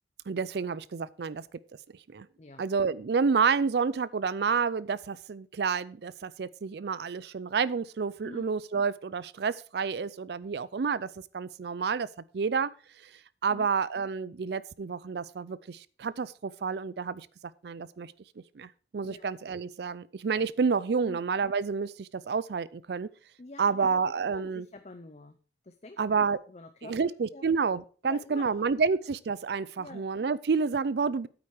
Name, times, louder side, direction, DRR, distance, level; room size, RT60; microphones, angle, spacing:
voice 1, 0.3-1.4 2.1-2.3 2.6-11.1 11.3-12.1 12.3-12.7 13.0-13.1 13.4-17.3 17.6-18.1 18.6-23.1 23.6-24.7 26.0-26.4 26.8-31.3, right 5 dB, 65° right, 19 dB, 0.4 m, -29 dB
voice 2, 23.4-25.4 25.6-27.5 28.0-28.5 29.8-30.1, left 2 dB, 40° left, 9 dB, 0.6 m, -47 dB
8.9 x 8.6 x 4.8 m, 0.39 s
head